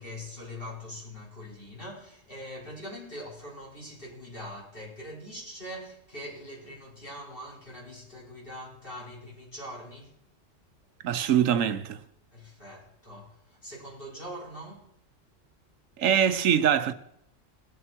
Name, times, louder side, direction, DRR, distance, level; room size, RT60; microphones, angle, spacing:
voice 1, 0.0-10.2 12.3-14.9, equal, 45° left, 5.1 m, -42 dB
voice 2, 11.0-12.0 16.0-16.9, right 9 dB, 80° right, 1.2 m, -23 dB
19.5 x 7.6 x 4.4 m
omnidirectional pair, 1.3 m